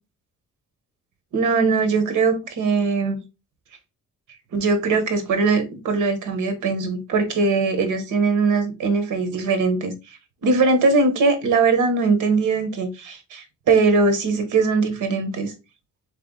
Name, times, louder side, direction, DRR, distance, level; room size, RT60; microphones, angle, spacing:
voice 1, 1.3-3.2 4.5-9.9 10.4-15.5, right 4 dB, 85° right, 1.2 m, -20 dB
3.8 x 3.4 x 3.9 m
cardioid pair, 130°, 30 cm